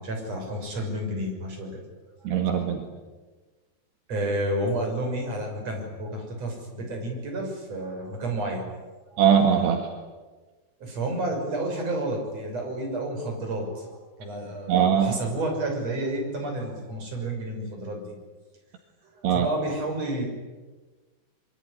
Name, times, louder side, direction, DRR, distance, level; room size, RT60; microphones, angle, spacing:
voice 1, 0.0-1.7 4.1-8.7 9.1-9.2 10.8-18.0 19.3-20.3, right 1 dB, 35° right, 1 dB, 7.3 m, -30 dB
voice 2, 2.3-2.8 9.2-9.9 14.7-15.2 19.2-19.5, right 8 dB, 70° right, 4 dB, 3.8 m, -21 dB
25.0 x 24.0 x 10.0 m, 1.3 s
omnidirectional pair, 5.0 m